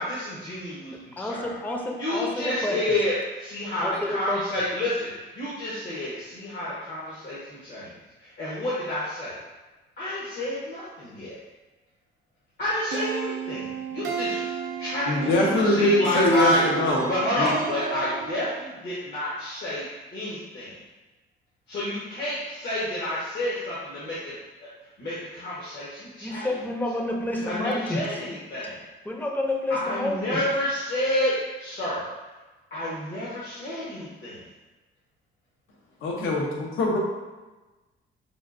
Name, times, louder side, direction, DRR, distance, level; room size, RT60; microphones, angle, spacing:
voice 1, 0.0-1.6 2.0-7.9 8.2-9.4 10.0-11.4 12.6-14.4 14.8-16.6 17.1-19.9 20.1-20.8 21.7-24.3 25.0-26.5 27.4-28.8 29.7-31.3 31.6-32.1 32.7-34.4, left 1 dB, 60° left, -8 dB, 1.0 m, -29 dB
voice 2, 0.9-3.0 3.8-4.4 26.2-28.1 29.0-30.4, left 1 dB, 10° left, 2 dB, 0.5 m, -29 dB
sound 1, 12.9-18.7, right 7 dB, 75° right, 0.5 m, -32 dB
voice 3, 15.1-17.1 17.4-17.5 36.0-37.0, left 1 dB, 80° left, -2 dB, 0.8 m, -22 dB
5.4 x 2.4 x 2.5 m, 1.2 s
cardioid pair, 90°, 20 cm